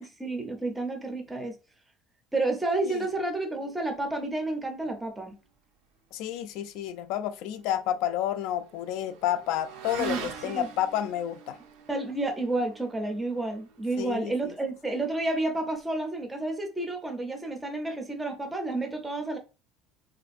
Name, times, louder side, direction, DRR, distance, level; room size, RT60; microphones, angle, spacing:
voice 1, 0.0-1.6 2.3-5.4 10.0-10.7 11.9-19.4, right 2 dB, 10° right, 0.5 m, -30 dB
voice 2, 6.1-11.6 14.0-14.5, left 11 dB, 60° left, 0.3 m, -30 dB
Motorcycle / Accelerating revving vroom, 7.0-15.8, right 7 dB, 85° right, 0.5 m, -46 dB
3.5 x 2.5 x 2.4 m
cardioid pair, 170°, 0 cm